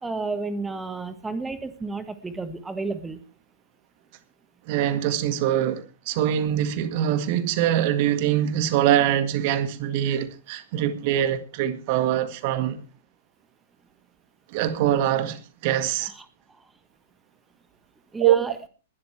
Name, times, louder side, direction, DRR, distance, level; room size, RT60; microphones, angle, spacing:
voice 1, 0.0-3.2 16.0-16.2 18.1-18.6, right 3 dB, 10° right, 1.5 m, -32 dB
voice 2, 4.7-12.8 14.5-16.1 18.2-18.5, right 11 dB, 45° right, 1.8 m, -23 dB
20.5 x 12.0 x 3.3 m
figure-of-eight pair, 105°, 0 cm